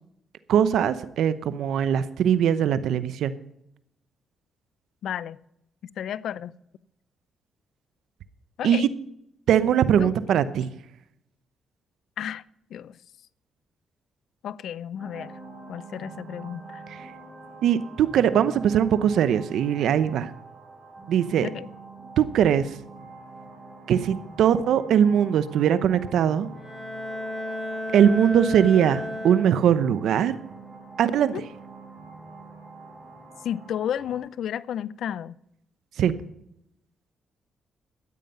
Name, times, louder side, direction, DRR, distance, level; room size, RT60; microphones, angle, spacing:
voice 1, 0.5-3.3 8.6-8.9 9.5-10.7 16.9-17.1 17.6-20.3 21.1-21.5 22.2-22.8 23.9-26.5 27.9-30.4 31.0-31.3 36.0-36.1, right 9 dB, 80° right, 0.8 m, -21 dB
voice 2, 5.0-5.4 6.0-6.5 8.6-8.9 10.0-10.1 12.2-12.4 12.7-13.0 14.4-15.4 15.7-16.8 21.4-21.7 31.3-31.4 33.4-35.4, left 9 dB, 75° left, 0.4 m, -32 dB
sound 1, 15.0-34.2, right 3 dB, 40° right, 4.8 m, -45 dB
Bowed string instrument, 26.5-29.9, left 1 dB, 30° left, 5.6 m, -33 dB
13.5 x 9.4 x 5.6 m
cardioid pair, 70°, 0 cm